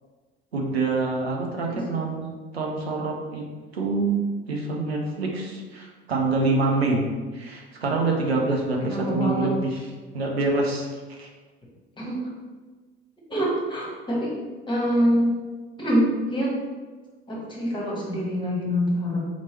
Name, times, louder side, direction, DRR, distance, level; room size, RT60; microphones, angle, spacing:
voice 1, 0.5-2.3 2.5-3.4 3.7-4.2 4.5-7.1 7.3-9.8 10.1-11.3, right 3 dB, 85° right, -1 dB, 0.6 m, -26 dB
voice 2, 8.8-9.5 12.0-12.3 13.3-14.3 14.7-15.3 15.8-16.6 17.3-19.2, equal, 15° left, -3 dB, 1.1 m, -25 dB
4.2 x 2.9 x 2.9 m, 1.4 s
figure-of-eight pair, 60°, 30 cm